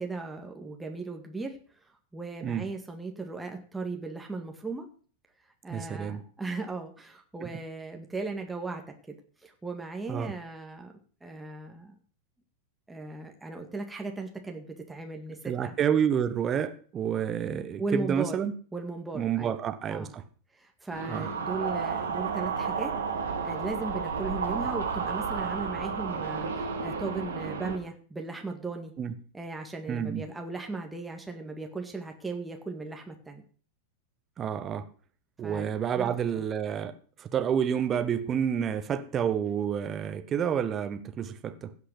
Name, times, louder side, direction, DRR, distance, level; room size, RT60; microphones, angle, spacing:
voice 1, 0.0-1.6 2.1-4.9 5.6-9.2 9.4-10.9 11.2-12.0 12.9-15.8 17.8-18.3 18.7-19.6 19.9-20.1 20.6-22.9 23.4-28.9 29.3-33.4 35.4-36.4, right 3 dB, 10° right, 2.0 m, -37 dB
voice 2, 5.7-6.2 7.4-7.5 10.1-10.3 15.4-18.5 19.1-20.2 21.1-21.3 29.0-29.1 29.9-30.2 34.4-34.9 35.4-41.7, right 8 dB, 25° right, 1.4 m, -29 dB
sound 1, 20.9-27.8, right 5 dB, 70° right, 3.0 m, -32 dB
16.5 x 5.8 x 7.9 m
figure-of-eight pair, 90°, 0 cm